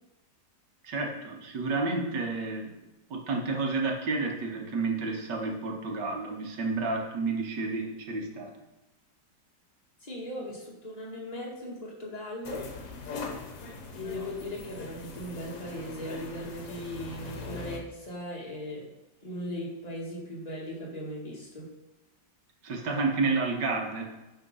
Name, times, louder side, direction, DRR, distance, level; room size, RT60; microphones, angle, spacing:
voice 1, 0.8-2.7 3.1-8.5 22.6-24.1, right 3 dB, 75° right, 1 dB, 1.8 m, -30 dB
voice 2, 10.0-12.7 13.9-18.9 19.2-21.7, equal, 25° left, -4 dB, 1.9 m, -38 dB
sound 1, 12.4-17.8, left 4 dB, 65° left, 1.5 m, -41 dB
9.2 x 3.6 x 5.4 m, 1.0 s
omnidirectional pair, 1.9 m